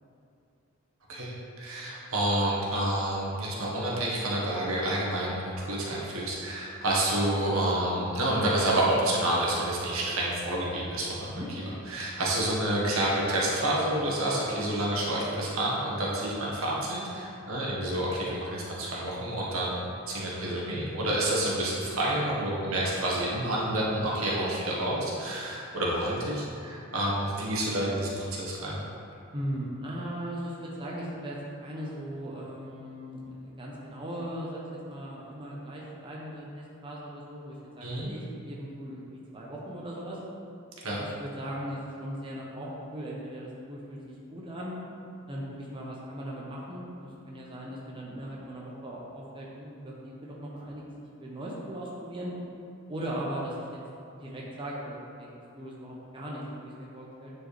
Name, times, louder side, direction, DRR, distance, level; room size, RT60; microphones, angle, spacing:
voice 1, 1.1-11.4 11.9-19.8 20.1-28.8 37.8-38.1 40.8-41.0, right 1 dB, 75° right, -5 dB, 1.4 m, -29 dB
voice 2, 29.3-40.2 41.0-44.7 45.3-50.8 51.2-52.3 52.9-53.6 54.2-57.3, equal, 25° right, -5 dB, 0.9 m, -38 dB
9.4 x 4.5 x 3.3 m, 2.7 s
head